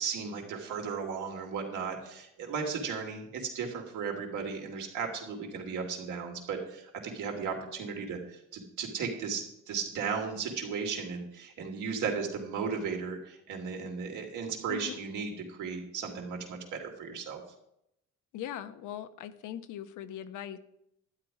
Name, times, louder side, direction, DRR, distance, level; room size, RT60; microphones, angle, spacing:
voice 1, 0.0-17.4, right 5 dB, 75° right, 2 dB, 3.1 m, -35 dB
voice 2, 18.3-20.6, left 11 dB, 80° left, 10 dB, 1.0 m, -40 dB
12.0 x 9.5 x 4.9 m, 0.78 s
cardioid pair, 95°, 30 cm